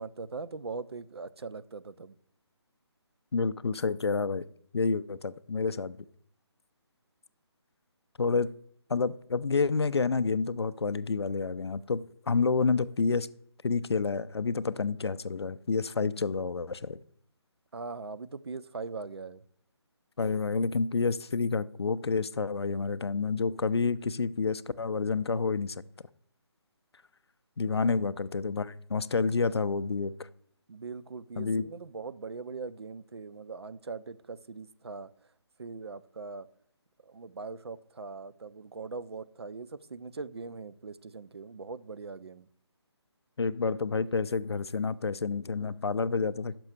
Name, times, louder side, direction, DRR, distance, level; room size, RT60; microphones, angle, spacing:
voice 1, 0.0-2.1 17.7-19.4 27.7-27.9 30.7-35.1 35.6-36.5 37.1-42.5, right 4 dB, 65° right, 0.4 m, -41 dB
voice 2, 3.3-4.5 4.7-6.0 8.2-8.5 8.9-13.3 13.6-17.0 20.2-25.8 27.6-30.1 31.4-31.6 43.4-46.6, left 4 dB, 65° left, 0.4 m, -29 dB
6.1 x 5.6 x 6.5 m
figure-of-eight pair, 150°, 15 cm